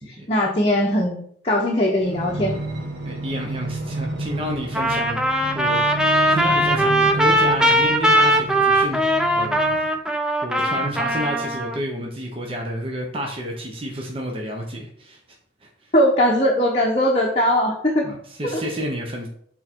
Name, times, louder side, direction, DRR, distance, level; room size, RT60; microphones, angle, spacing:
voice 1, 0.1-1.2 1.4-2.6 15.9-18.0 18.5-18.6, left 1 dB, 30° left, -2 dB, 0.8 m, -20 dB
sound 1, 2.0-10.0 10.6-11.9 12.5-12.6, right 2 dB, 60° right, 1.5 m, -31 dB
voice 2, 3.0-5.8 6.3-9.9 10.4-15.2 15.6-15.9 18.0-19.3, equal, 30° right, 0 dB, 0.9 m, -30 dB
Trumpet, 4.7-11.8, right 1 dB, 5° right, 0.5 m, -20 dB
6.3 x 3.9 x 4.5 m, 0.63 s
head